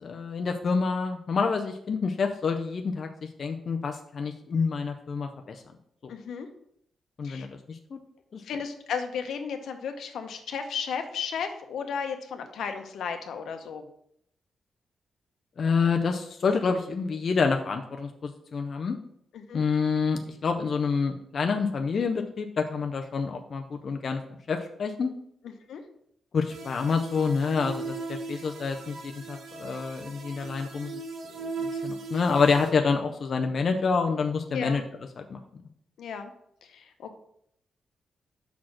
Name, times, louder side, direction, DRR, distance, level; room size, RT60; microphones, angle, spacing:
voice 1, 0.0-5.6 6.0-6.1 7.2-8.0 8.3-8.4 15.6-19.0 19.5-24.2 24.5-25.1 26.3-31.0 31.4-34.8 35.2-35.4, left 5 dB, 40° left, 4 dB, 0.5 m, -28 dB
voice 2, 6.1-6.5 7.2-7.5 8.4-13.8 19.3-19.6 25.7-25.8 34.5-34.8 36.0-36.3 36.7-37.1, left 6 dB, 80° left, 6 dB, 0.9 m, -34 dB
sound 1, 26.5-32.7, right 3 dB, 90° right, 1.1 m, -38 dB
5.8 x 4.2 x 6.3 m, 0.72 s
wide cardioid pair, 175°, 0 cm